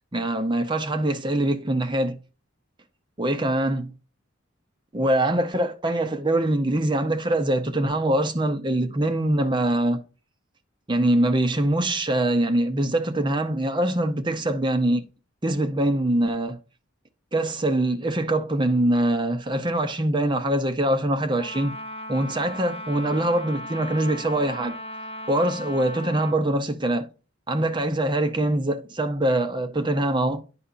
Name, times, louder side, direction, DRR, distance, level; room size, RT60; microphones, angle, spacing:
voice 1, 0.1-2.2 3.2-3.9 4.9-10.0 10.9-15.0 15.4-16.6 17.3-21.7 22.1-24.8 25.3-27.1 27.5-30.4, right 1 dB, 20° right, 0.6 m, -23 dB
Trumpet, 21.4-26.4, left 1 dB, 30° left, 1.3 m, -37 dB
11.0 x 4.2 x 2.6 m
head